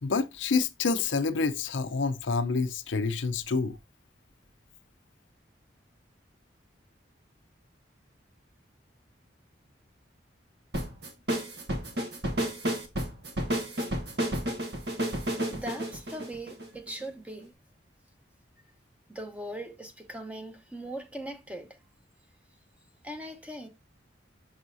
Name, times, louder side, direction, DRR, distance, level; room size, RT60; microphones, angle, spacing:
voice 1, 0.0-3.8, left 4 dB, 80° left, 0.6 m, -28 dB
sound 1, 10.7-17.0, right 1 dB, 60° right, 1.4 m, -31 dB
voice 2, 15.5-17.5 19.1-21.8 23.0-23.7, right 1 dB, 5° right, 0.9 m, -40 dB
6.4 x 6.2 x 2.6 m
head